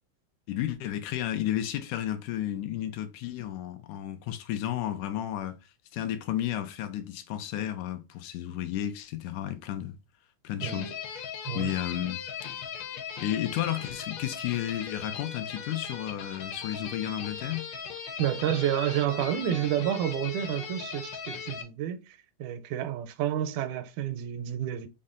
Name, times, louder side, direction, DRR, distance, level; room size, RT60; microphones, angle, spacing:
voice 1, 0.5-5.6 5.9-10.0 10.4-10.9 11.5-12.2 13.2-17.7, left 12 dB, 85° left, 2.1 m, -32 dB
sound 1, 10.6-21.6, left 7 dB, 70° left, 1.9 m, -38 dB
voice 2, 18.2-22.0 22.4-24.9, right 11 dB, 85° right, 2.0 m, -29 dB
5.4 x 2.1 x 3.6 m
omnidirectional pair, 3.5 m